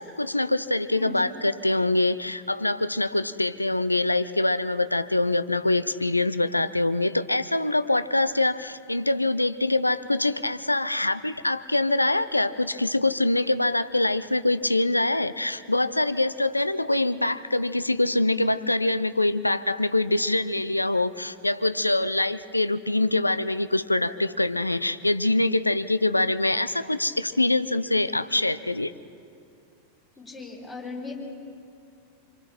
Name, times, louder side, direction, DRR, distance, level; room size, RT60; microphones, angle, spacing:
voice 1, 0.0-28.9, left 2 dB, 85° left, 14 dB, 0.6 m, -24 dB
voice 2, 30.2-31.1, left 4 dB, 20° left, -1 dB, 5.6 m, -38 dB
26.5 x 25.5 x 4.5 m, 2.5 s
figure-of-eight pair, 90°, 0 cm